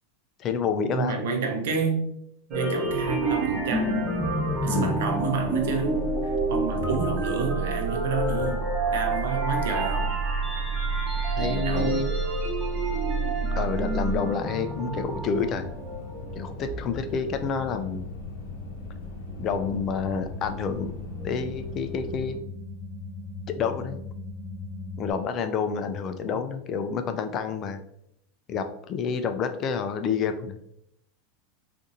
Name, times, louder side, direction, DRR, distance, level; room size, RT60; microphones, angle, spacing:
voice 1, 0.4-1.3 4.7-5.0 11.4-12.1 13.6-15.7 16.3-18.1 19.4-20.9 21.2-22.4 23.6-24.0 25.0-27.8 28.5-30.6, left 6 dB, 35° left, 8 dB, 0.3 m, -28 dB
voice 2, 0.9-2.1 2.5-4.3 4.6-10.1 11.4-12.0, right 4 dB, 80° right, 3 dB, 0.7 m, -29 dB
sound 1, 2.5-18.3 18.7-21.5, right 1 dB, 20° right, 1.0 m, -31 dB
sound 2, 2.8-22.3, left 2 dB, 70° left, 0.7 m, -41 dB
sound 3, 5.5-25.1, right 5 dB, 45° right, 0.9 m, -34 dB
4.0 x 2.5 x 2.6 m, 0.75 s
supercardioid pair, 130°, 0 cm